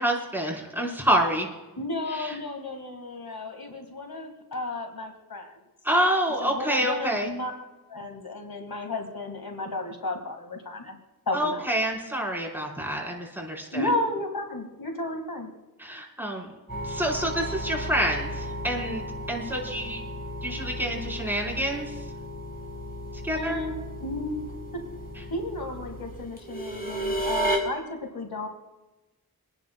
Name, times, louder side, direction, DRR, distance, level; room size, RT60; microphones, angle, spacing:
voice 1, 0.0-1.5 2.1-2.4 5.8-7.3 11.3-13.9 15.8-16.5 16.8-20.0 20.4-21.9 23.2-23.6, right 1 dB, 5° right, -2 dB, 4.6 m, -27 dB
voice 2, 1.8-5.6 6.4-11.0 11.3-11.7 13.7-15.5 23.3-24.5 25.3-28.5, left 2 dB, 75° left, 3 dB, 2.0 m, -33 dB
sound 1, 16.7-27.6, right 1 dB, 25° left, 4.9 m, -34 dB
28.0 x 10.5 x 2.3 m, 1.1 s
wide cardioid pair, 50°, 37 cm